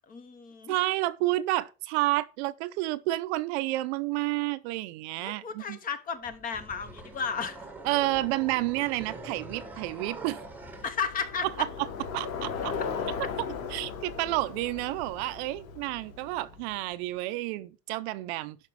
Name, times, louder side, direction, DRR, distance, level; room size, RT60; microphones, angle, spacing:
voice 1, 0.0-0.7 5.2-7.7 10.8-11.5, left 6 dB, 20° left, 0.8 m, -34 dB
voice 2, 0.7-5.8 7.8-10.4 11.6-11.7 12.1-12.7 13.7-18.6, right 18 dB, 50° right, 0.6 m, -30 dB
sound 1, 6.3-11.0, right 2 dB, 5° right, 1.1 m, -44 dB
Bicycle, 10.4-16.9, left 6 dB, 80° left, 3.2 m, -37 dB
12.0 x 5.2 x 4.7 m
supercardioid pair, 160°, 42 cm